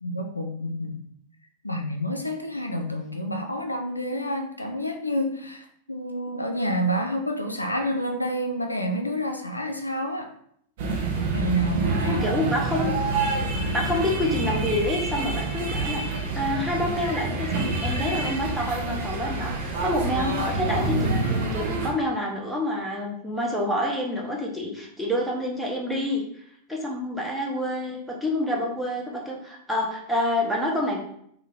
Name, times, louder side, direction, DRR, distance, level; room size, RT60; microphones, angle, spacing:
voice 1, 0.0-1.0 1.6-10.3 11.3-12.5, equal, 85° left, 4 dB, 0.3 m, -29 dB
sound 1, 10.8-21.9, right 2 dB, 55° right, 0.6 m, -27 dB
voice 2, 12.0-12.9 13.7-26.2 26.7-31.0, left 1 dB, ahead, -2 dB, 0.7 m, -28 dB
2.8 x 2.3 x 3.3 m, 0.69 s
figure-of-eight pair, 90°, 0 cm